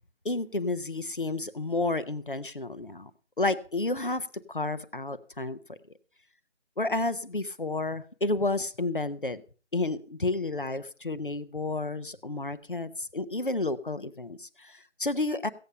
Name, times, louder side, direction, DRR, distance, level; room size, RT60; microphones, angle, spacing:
voice 1, 0.2-3.1 3.4-5.8 6.8-9.4 9.7-15.5, left 2 dB, 45° left, 13 dB, 0.8 m, -31 dB
16.0 x 8.5 x 5.4 m, 0.39 s
figure-of-eight pair, 180°, 37 cm